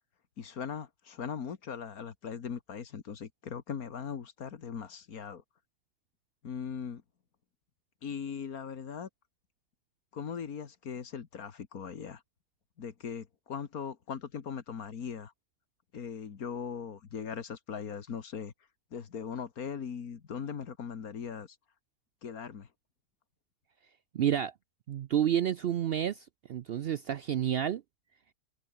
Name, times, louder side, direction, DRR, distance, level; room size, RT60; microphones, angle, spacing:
voice 1, 0.4-5.4 6.4-7.0 8.0-9.1 10.1-12.2 12.8-15.3 15.9-18.5 18.9-21.6 22.2-22.7, left 7 dB, 85° left, 2.1 m, -39 dB
voice 2, 24.1-24.5 24.9-27.8, right 10 dB, 65° right, 0.6 m, -30 dB
omnidirectional pair, 1.5 m